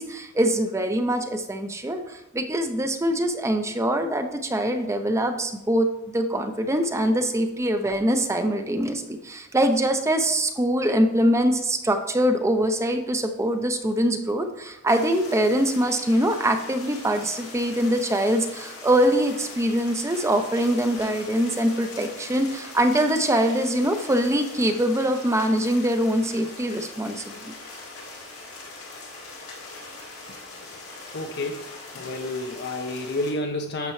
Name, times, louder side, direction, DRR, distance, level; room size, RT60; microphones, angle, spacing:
voice 1, 0.0-5.9 6.1-27.5, right 1 dB, 15° right, 7 dB, 0.5 m, -23 dB
sound 1, 14.9-33.3, left 3 dB, 90° left, 2.1 m, -41 dB
voice 2, 31.1-31.6 31.9-33.9, left 2 dB, 55° left, 3 dB, 0.5 m, -30 dB
9.7 x 6.7 x 3.2 m, 0.89 s
head